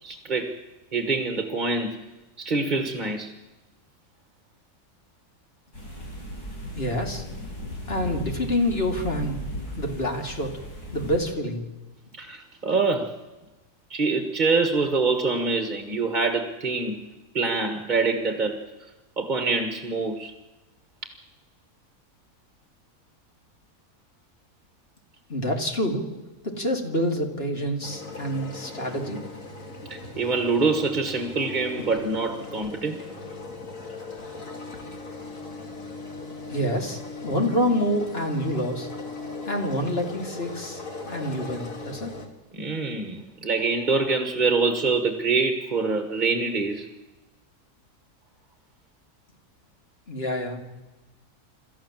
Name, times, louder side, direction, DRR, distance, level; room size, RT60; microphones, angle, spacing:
voice 1, 0.0-0.5 0.9-1.9 2.4-3.3 12.2-13.2 13.9-17.0 17.3-18.6 19.2-20.3 29.9-33.0 42.5-46.9, right 3 dB, 30° right, 7 dB, 1.7 m, -25 dB
sound 1, 5.7-11.2, equal, 85° left, 6.6 m, -36 dB
voice 2, 6.7-7.2 7.9-9.4 9.8-10.5 10.9-11.6 25.3-26.0 26.4-29.2 36.5-38.9 39.5-42.1 50.1-50.6, equal, 40° left, 3 dB, 2.8 m, -27 dB
sound 2, 27.8-42.3, left 3 dB, 55° left, 2.9 m, -39 dB
27.5 x 13.5 x 7.4 m, 1.1 s
omnidirectional pair, 1.6 m